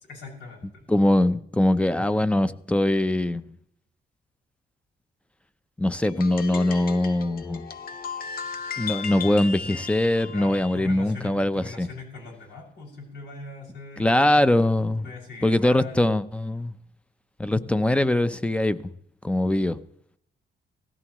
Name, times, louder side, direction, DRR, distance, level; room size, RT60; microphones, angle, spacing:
voice 1, 0.1-0.9 10.3-16.2, left 4 dB, 80° left, 6.5 m, -41 dB
voice 2, 0.9-3.5 5.8-7.7 8.8-11.9 14.0-15.0 15.4-16.7 17.4-18.8 19.2-19.8, left 1 dB, 5° left, 0.7 m, -22 dB
sound 1, 6.0-10.8, left 6 dB, 55° left, 1.0 m, -35 dB
18.0 x 15.0 x 3.1 m
cardioid pair, 100°, 18 cm